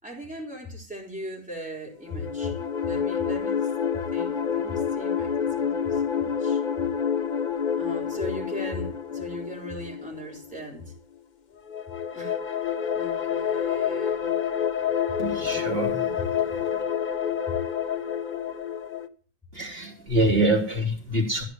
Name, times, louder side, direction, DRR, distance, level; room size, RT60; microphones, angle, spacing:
voice 1, 0.0-3.6 4.1-6.6 7.8-10.9 12.1-12.4 12.9-14.3, equal, 5° right, -2 dB, 3.9 m, -39 dB
sound 1, 2.0-10.6 11.7-19.1, left 8 dB, 65° left, 0.4 m, -28 dB
voice 2, 15.2-16.8 19.5-21.4, right 1 dB, 35° right, -4 dB, 3.9 m, -26 dB
15.0 x 5.1 x 9.3 m, 0.44 s
omnidirectional pair, 1.9 m